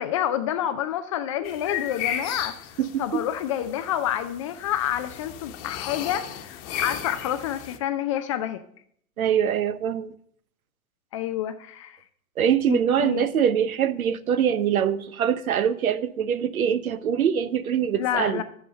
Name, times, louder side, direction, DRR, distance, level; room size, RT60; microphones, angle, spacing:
voice 1, 0.0-8.6 11.1-12.0 12.7-13.3 17.9-18.4, left 11 dB, 25° left, 0.4 m, -28 dB
sound 1, 1.4-7.8, left 9 dB, 40° left, 1.2 m, -35 dB
voice 2, 2.8-3.2 9.2-10.1 12.4-18.4, right 8 dB, 70° right, 0.9 m, -23 dB
10.0 x 7.1 x 6.4 m
figure-of-eight pair, 110°, 44 cm